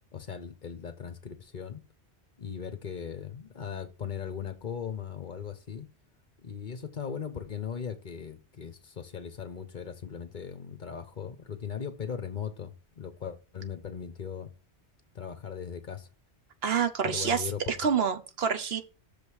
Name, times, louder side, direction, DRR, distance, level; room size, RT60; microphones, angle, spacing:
voice 1, 0.1-1.8 2.4-5.9 6.4-14.5 15.1-16.1 17.0-17.8, left 7 dB, 50° left, 1.0 m, -38 dB
voice 2, 16.6-18.8, right 7 dB, 70° right, 1.1 m, -27 dB
6.5 x 5.3 x 6.4 m
omnidirectional pair, 1.1 m